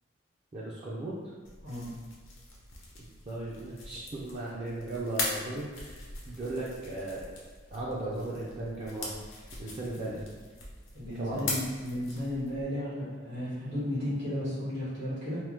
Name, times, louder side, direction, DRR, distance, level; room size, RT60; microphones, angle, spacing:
voice 1, 0.5-1.2 3.3-6.0 6.2-7.3 7.7-9.1 9.6-10.2 11.2-11.5, right 2 dB, 35° right, -6 dB, 0.4 m, -36 dB
sound 1, 1.4-12.6, left 3 dB, 80° left, 0.7 m, -41 dB
voice 2, 10.9-15.4, left 1 dB, 65° right, -12 dB, 1.4 m, -34 dB
3.0 x 2.0 x 3.2 m, 1.5 s
head